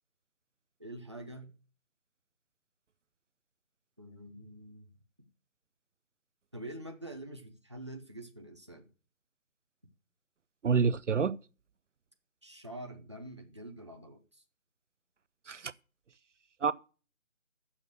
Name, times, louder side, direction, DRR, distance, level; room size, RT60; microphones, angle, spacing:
voice 1, 0.8-1.5 4.0-4.9 6.5-8.9 12.4-14.4, right 1 dB, 20° right, 0.6 m, -46 dB
voice 2, 10.6-11.4 15.5-15.7 16.6-16.7, right 6 dB, 65° right, 0.6 m, -27 dB
7.7 x 7.2 x 8.0 m
figure-of-eight pair, 165°, 39 cm